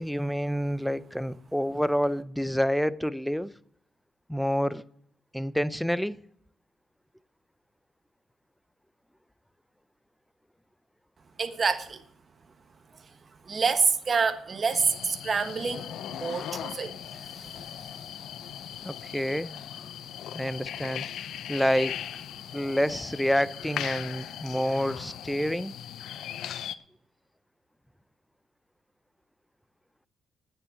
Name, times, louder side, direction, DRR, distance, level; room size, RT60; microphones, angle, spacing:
voice 1, 0.0-3.5 4.3-4.8 5.3-6.2 18.8-19.6 20.3-21.1 21.5-22.0 22.5-25.7, equal, ahead, 0.6 m, -28 dB
voice 2, 11.4-12.0 13.4-17.6, right 5 dB, 40° right, 1.2 m, -28 dB
sound 1, 14.7-26.8, left 10 dB, 75° left, 0.6 m, -39 dB
10.5 x 9.7 x 6.9 m
cardioid pair, 90°, 0 cm